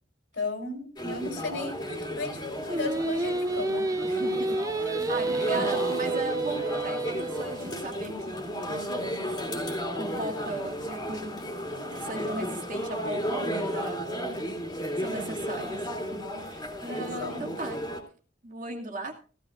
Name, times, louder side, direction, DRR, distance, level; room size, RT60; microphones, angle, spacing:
voice 1, 0.3-4.0 5.2-5.6 16.8-17.5, left 3 dB, 80° left, 2 dB, 3.9 m, -36 dB
sound 1, 1.0-18.0, equal, 25° left, 2.7 m, -34 dB
Singing, 2.7-7.8, right 2 dB, 20° right, 0.5 m, -29 dB
voice 2, 4.0-9.2 10.0-11.4 12.0-14.3 15.0-17.8 18.4-19.2, right 2 dB, 45° right, 0 dB, 2.3 m, -38 dB
16.5 x 15.5 x 2.5 m, 0.37 s
head